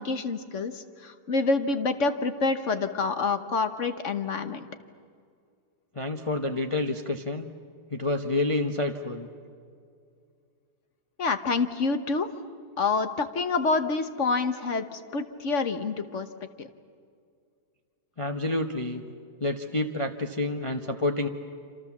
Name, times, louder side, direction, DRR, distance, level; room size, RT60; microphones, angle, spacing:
voice 1, 0.0-4.7 11.2-12.3 12.8-16.3 16.6-16.7, left 4 dB, 50° left, 9 dB, 1.3 m, -27 dB
voice 2, 5.9-7.5 7.9-9.3 18.2-19.0 19.4-21.3, left 2 dB, 25° left, 3 dB, 0.8 m, -28 dB
27.5 x 27.0 x 7.3 m, 2.3 s
omnidirectional pair, 1.8 m